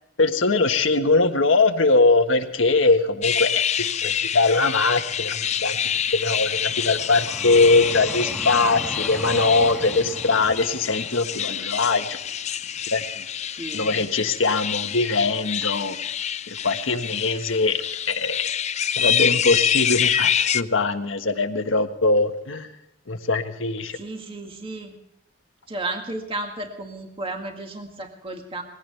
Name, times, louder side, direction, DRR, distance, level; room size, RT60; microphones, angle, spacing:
voice 1, 0.2-3.5 4.0-5.8 6.1-12.2 12.9-13.3 13.7-16.0 16.5-18.4 18.9-22.7 23.1-24.0, left 3 dB, 85° left, 7 dB, 1.5 m, -21 dB
sound 1, 3.2-20.6, left 9 dB, 35° left, 0.4 m, -26 dB
Vehicle, 5.1-14.2 14.8-15.0, equal, 5° right, 1.4 m, -39 dB
voice 2, 13.5-13.9 23.9-25.0 25.7-28.6, right 2 dB, 30° right, 3 dB, 2.0 m, -33 dB
21.0 x 16.5 x 3.4 m, 0.89 s
head